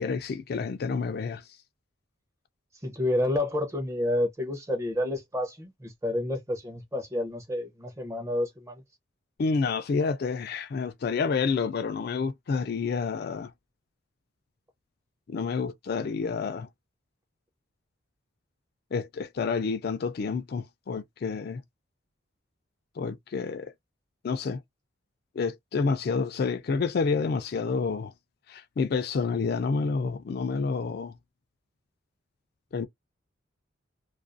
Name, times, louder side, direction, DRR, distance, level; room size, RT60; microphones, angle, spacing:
voice 1, 0.0-1.4 9.4-13.5 15.3-16.7 18.9-21.6 23.0-23.7 24.2-24.6 25.4-28.1 28.5-31.1 32.7-32.9, left 5 dB, 50° left, 0.3 m, -29 dB
voice 2, 2.8-8.8, left 1 dB, 15° right, 0.6 m, -29 dB
2.4 x 2.3 x 2.5 m
head